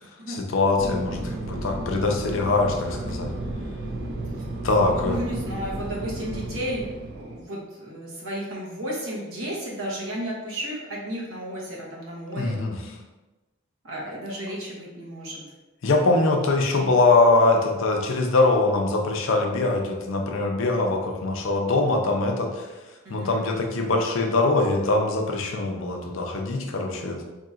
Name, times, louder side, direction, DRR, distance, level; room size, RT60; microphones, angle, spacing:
voice 1, 0.3-3.3 4.6-5.2 12.4-12.8 15.8-27.3, left 2 dB, 65° left, 2 dB, 0.5 m, -23 dB
Fixed-wing aircraft airplane, 0.8-7.4, right 1 dB, 50° right, 0.5 m, -33 dB
voice 2, 5.0-6.8 7.1-12.6 13.8-15.4 23.0-23.6, equal, 70° right, -3 dB, 1.0 m, -33 dB
4.1 x 2.8 x 2.4 m, 1.1 s
head